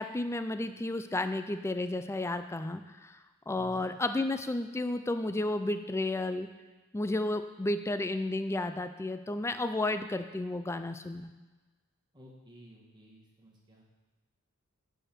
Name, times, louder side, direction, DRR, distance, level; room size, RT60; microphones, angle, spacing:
voice 1, 0.0-3.2 3.5-6.5 6.9-11.3, left 2 dB, 10° left, 9 dB, 0.4 m, -32 dB
voice 2, 3.6-3.9 12.1-13.8, equal, 20° right, -2 dB, 1.8 m, -54 dB
9.1 x 5.0 x 6.0 m, 1.2 s
head